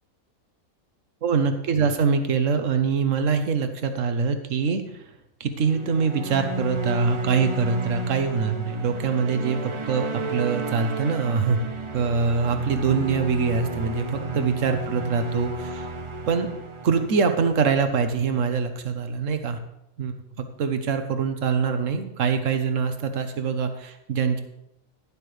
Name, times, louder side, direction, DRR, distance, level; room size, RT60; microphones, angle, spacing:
voice 1, 1.2-5.0 5.4-11.6 11.9-15.9 16.3-16.5 16.8-19.6 20.0-24.4, right 5 dB, 65° right, 7 dB, 1.4 m, -24 dB
sound 1, 5.6-18.1, right 3 dB, 35° right, 0.5 m, -32 dB
11.5 x 11.0 x 3.3 m, 0.82 s
omnidirectional pair, 1.5 m